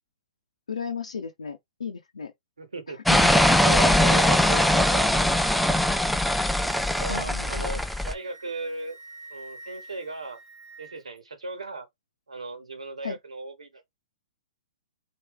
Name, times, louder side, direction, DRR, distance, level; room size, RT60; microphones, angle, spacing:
voice 1, 0.7-2.3 3.1-3.2 7.1-7.8 13.0-13.2, left 6 dB, 85° left, 0.7 m, -35 dB
voice 2, 2.6-3.0 3.6-5.3 7.0-9.0 9.3-10.4 10.8-11.9 12.3-13.9, right 3 dB, 85° right, 1.1 m, -36 dB
sound 1, 3.1-8.1, left 1 dB, ahead, 0.4 m, -21 dB
Wind instrument woodwind instrument, 7.2-11.2, right 2 dB, 30° right, 1.6 m, -48 dB
4.7 x 2.6 x 3.3 m
hypercardioid pair, 120°, 3 cm